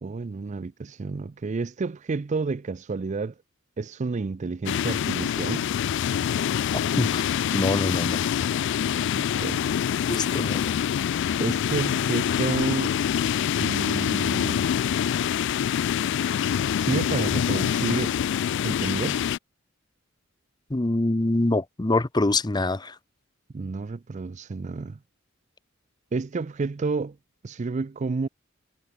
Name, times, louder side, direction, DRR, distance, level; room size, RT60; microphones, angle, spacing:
voice 1, 0.0-3.3 3.8-5.7 9.2-9.6 11.4-12.9 13.6-14.6 16.8-18.2 18.6-19.2 23.5-25.0 26.1-27.2 27.4-28.3, right 4 dB, 35° right, 0.4 m, -30 dB
sound 1, 4.7-19.4, left 9 dB, 60° left, 0.3 m, -25 dB
voice 2, 7.5-8.2 10.1-10.7 20.7-23.0, left 2 dB, 20° left, 0.7 m, -25 dB
head